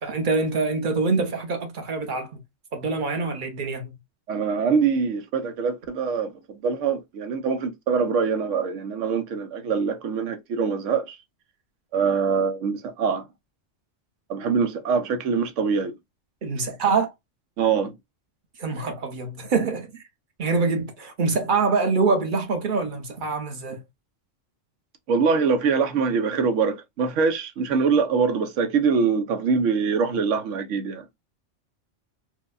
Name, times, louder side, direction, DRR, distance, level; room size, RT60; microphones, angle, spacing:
voice 1, 0.0-2.4 2.7-3.9 16.4-17.1 18.6-20.0 20.4-23.8, right 4 dB, 45° right, 1.0 m, -25 dB
voice 2, 4.3-11.2 11.9-13.2 14.3-15.9 17.6-17.9 25.1-31.0, right 5 dB, 85° right, 1.0 m, -24 dB
4.5 x 2.2 x 2.4 m
omnidirectional pair, 1.2 m